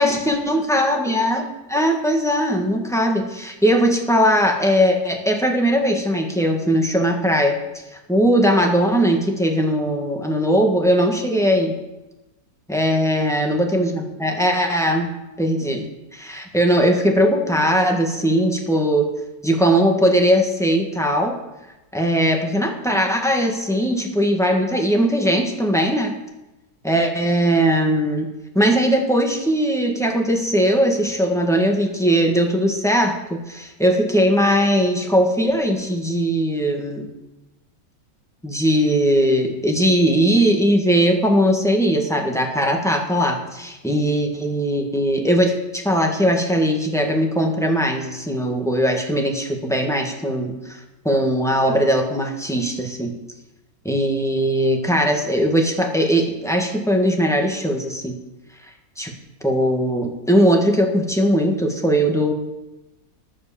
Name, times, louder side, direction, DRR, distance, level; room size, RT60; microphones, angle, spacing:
voice 1, 0.0-7.6 8.1-11.7 12.7-15.1 15.4-15.9 16.1-19.1 19.4-21.4 21.9-26.1 26.8-28.3 28.5-37.1 38.4-50.8 51.0-53.1 53.8-58.2 59.0-59.1 59.4-62.3, equal, ahead, 1 dB, 1.5 m, -19 dB
11.0 x 7.8 x 7.1 m, 1.0 s
omnidirectional pair, 1.8 m